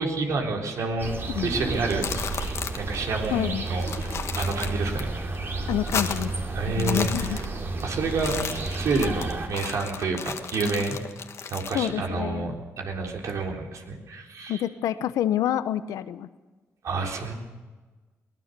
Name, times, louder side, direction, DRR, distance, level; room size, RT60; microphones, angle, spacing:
voice 1, 0.0-2.1 2.8-3.9 4.3-5.1 6.5-7.4 7.8-8.4 8.7-11.0 11.5-14.6 16.8-17.3, right 3 dB, 65° right, 2 dB, 3.9 m, -29 dB
sound 1, 1.0-9.5, right 2 dB, 45° right, 3.2 m, -31 dB
sound 2, 1.7-3.0 3.2-3.3 3.7-5.0 5.3-6.4 6.7-7.8 8.1-11.9, left 6 dB, 55° left, 1.6 m, -34 dB
voice 2, 3.3-3.7 5.7-6.3 6.8-7.4 11.7-12.6 14.5-16.3, left 11 dB, 85° left, 13 dB, 1.0 m, -27 dB
22.5 x 18.5 x 6.9 m, 1.3 s
cardioid pair, 80°, 6 cm